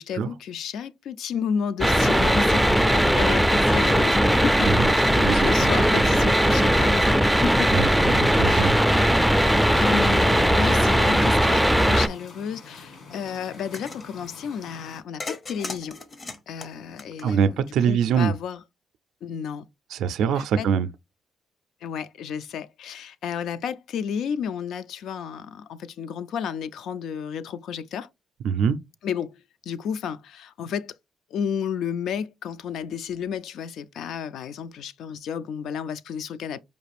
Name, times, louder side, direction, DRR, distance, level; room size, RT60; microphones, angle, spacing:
voice 1, 0.0-7.7 8.5-8.6 9.8-16.0 16.5-18.6 19.2-19.7 20.2-20.7 21.8-28.1 29.0-30.9 31.3-36.6, left 7 dB, 75° left, 0.3 m, -32 dB
sound 1, 1.8-12.1, equal, ahead, 0.3 m, -19 dB
voice 2, 7.7-9.3 17.2-18.3 19.9-20.9 28.4-28.8, right 7 dB, 80° right, 0.3 m, -24 dB
sound 2, 9.3-15.0, left 4 dB, 60° left, 1.5 m, -46 dB
sound 3, 13.5-14.1 15.2-17.7, left 3 dB, 35° left, 0.6 m, -37 dB
5.0 x 2.4 x 3.3 m
cardioid pair, 90°, 0 cm